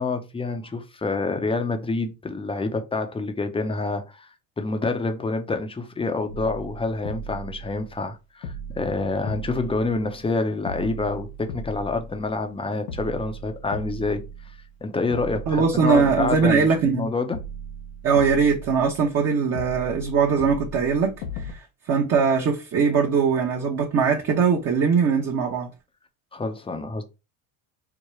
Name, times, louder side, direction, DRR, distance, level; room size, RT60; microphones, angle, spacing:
voice 1, 0.0-4.3 4.6-14.2 14.8-17.4 26.3-27.0, left 3 dB, 10° left, 0.6 m, -27 dB
sound 1, 6.3-8.1 8.4-10.3 10.7-12.5 12.9-14.8 15.1-17.0 17.3-19.2 19.5-21.5, right 1 dB, 90° left, 0.8 m, -37 dB
voice 2, 15.5-17.1 18.0-21.1 21.4-25.7, right 6 dB, 35° right, 0.9 m, -21 dB
4.8 x 2.2 x 3.1 m
supercardioid pair, 100°, 45 cm